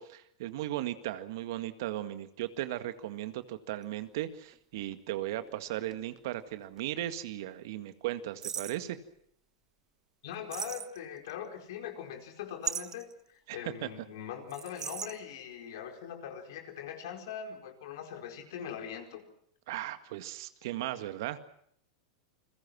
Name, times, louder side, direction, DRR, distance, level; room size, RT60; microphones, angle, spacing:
voice 1, 0.0-9.0 13.5-13.9 19.7-21.4, right 14 dB, 65° right, 10 dB, 1.9 m, -37 dB
sound 1, 2.8-2.9 3.8-6.5 6.8-6.9 8.4-8.9 10.5-11.3 12.6-13.1 14.5-15.2, right 8 dB, 25° right, 1.2 m, -38 dB
voice 2, 10.2-19.2, left 8 dB, 70° left, 4 dB, 4.7 m, -41 dB
29.0 x 21.5 x 6.2 m, 0.68 s
hypercardioid pair, 105°, 2 cm